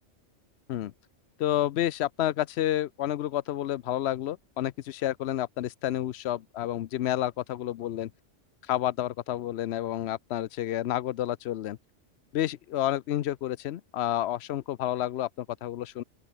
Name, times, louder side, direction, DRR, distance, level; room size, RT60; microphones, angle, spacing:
voice 1, 1.4-8.1 8.7-11.8 12.3-16.0, left 13 dB, 65° left, 0.8 m, -30 dB
open air
omnidirectional pair, 1.2 m